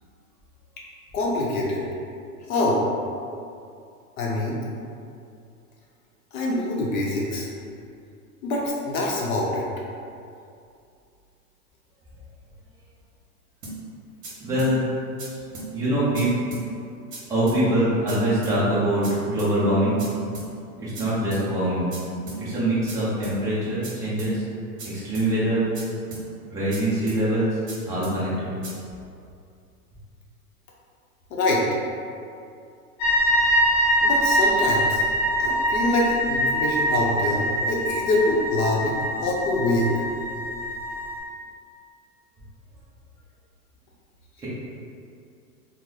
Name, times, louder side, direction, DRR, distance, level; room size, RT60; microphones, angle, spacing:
voice 1, 1.1-1.8 2.5-2.8 4.2-4.6 6.3-7.5 8.4-9.7 31.3-31.6 34.0-35.0 35.4-39.9, left 2 dB, 60° left, -3 dB, 0.7 m, -25 dB
sound 1, 13.6-13.8 14.2-14.3 14.6-14.7 15.2-15.3 15.5-15.7 16.1-16.2 16.5-16.6 17.1-17.2 17.5-17.6 18.1-18.2 18.4-18.6 19.0-19.1 19.4-19.5 20.0-20.1 20.3-20.5 20.9-21.0 21.3-21.4 21.9-22.0 22.3-22.4 22.9-23.0 23.2-23.4 23.8-23.9 24.2-24.3 24.8-24.9 25.1-25.3 25.7-25.8 26.1-26.2 26.7-26.8 27.1-27.2 27.7-27.8 28.0-28.2 28.6-28.7, right 2 dB, 50° right, 1.2 m, -36 dB
voice 2, 14.4-14.8 15.7-16.3 17.3-20.0 20.8-21.9 22.4-24.4 24.8-25.6 26.5-27.5 27.8-28.5, right 1 dB, 5° right, -10 dB, 0.4 m, -23 dB
sound 2, 33.0-41.2, equal, 20° left, 0.7 m, -24 dB
3.1 x 2.1 x 3.7 m, 2.5 s
hypercardioid pair, 135°, 47 cm